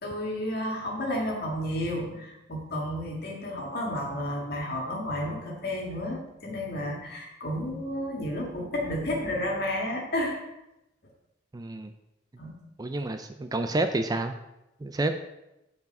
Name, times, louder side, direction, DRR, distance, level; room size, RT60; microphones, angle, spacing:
voice 1, 0.0-10.4 12.4-12.5, left 1 dB, 55° left, -1 dB, 1.9 m, -31 dB
voice 2, 11.5-11.9 12.8-14.3 14.8-15.2, right 2 dB, 20° right, 8 dB, 0.4 m, -29 dB
8.2 x 4.7 x 5.3 m, 0.92 s
head